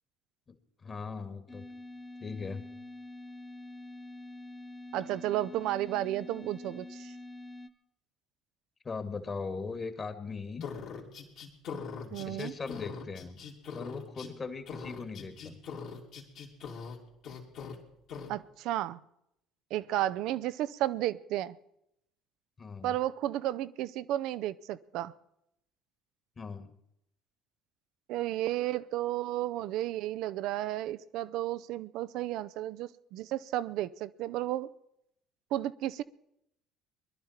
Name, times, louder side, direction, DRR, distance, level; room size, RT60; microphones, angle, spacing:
voice 1, 0.8-1.7 2.2-2.7 8.8-10.7 12.0-13.4 13.7-15.6 22.6-23.0 26.4-26.7, left 4 dB, 35° left, 1.9 m, -39 dB
sound 1, 1.5-7.7, left 1 dB, 15° left, 1.3 m, -46 dB
voice 2, 4.9-7.1 12.1-12.5 18.3-19.0 19.7-21.6 22.8-25.1 28.1-34.7 35.5-36.0, right 14 dB, 65° right, 0.5 m, -33 dB
sound 2, 10.6-14.3 14.7-17.0 17.2-17.8 18.1-18.3, left 6 dB, 60° left, 2.9 m, -41 dB
21.0 x 11.5 x 4.4 m
hypercardioid pair, 60°, 0 cm